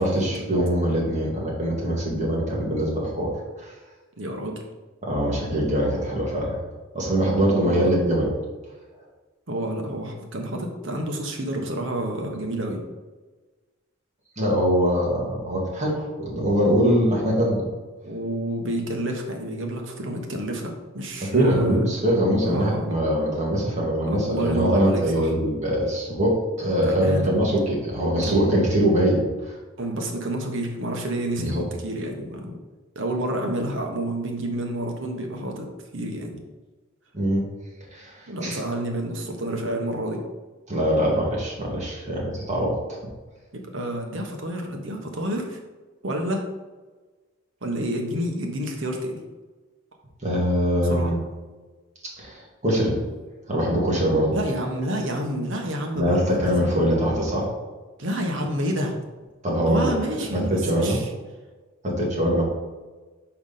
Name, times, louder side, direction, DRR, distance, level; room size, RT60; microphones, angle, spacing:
voice 1, 0.0-3.7 5.1-6.6 6.9-8.3 14.4-17.7 21.2-29.5 31.4-31.6 37.1-37.5 37.9-38.6 40.7-43.0 50.2-51.2 52.2-53.0 53.5-54.4 55.9-57.5 59.4-60.0 60.3-61.0 61.8-62.4, equal, 35° right, -3 dB, 1.9 m, -23 dB
voice 2, 4.2-4.5 7.5-7.9 9.5-12.8 18.0-21.8 22.4-22.9 24.0-25.3 26.8-27.3 28.2-28.5 29.8-32.6 32.9-35.7 35.9-36.4 38.3-40.2 43.5-45.6 46.0-46.4 47.6-49.2 50.9-51.1 54.3-56.9 58.0-58.9 59.7-61.1, right 1 dB, 65° right, 2 dB, 1.1 m, -29 dB
5.1 x 4.8 x 5.6 m, 1.3 s
head